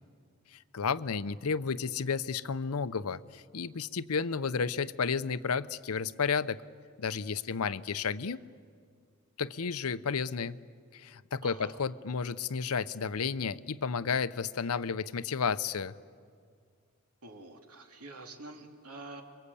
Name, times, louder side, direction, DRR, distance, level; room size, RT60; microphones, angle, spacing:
voice 1, 0.5-6.6 7.0-8.4 9.4-10.6 10.9-15.9, left 5 dB, 80° left, 15 dB, 0.7 m, -32 dB
voice 2, 11.4-11.8 17.2-19.2, right 2 dB, 85° right, 3 dB, 2.8 m, -47 dB
28.0 x 23.5 x 8.5 m, 2.2 s
head